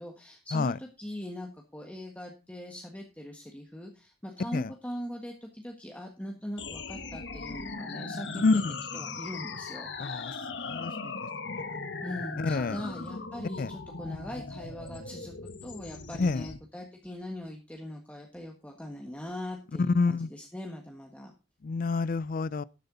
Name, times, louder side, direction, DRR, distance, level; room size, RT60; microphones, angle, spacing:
voice 1, 0.0-8.6 8.9-10.7 12.0-21.3, left 1 dB, 10° left, 1.5 m, -41 dB
sound 1, 6.6-16.6, left 4 dB, 80° left, 1.4 m, -39 dB
voice 2, 8.4-8.8 10.0-10.3 10.7-11.1 11.5-11.6 12.4-12.8 13.6-13.7 16.2-16.4 19.8-20.3 21.6-22.6, left 3 dB, 50° left, 0.4 m, -27 dB
12.5 x 7.9 x 3.9 m
head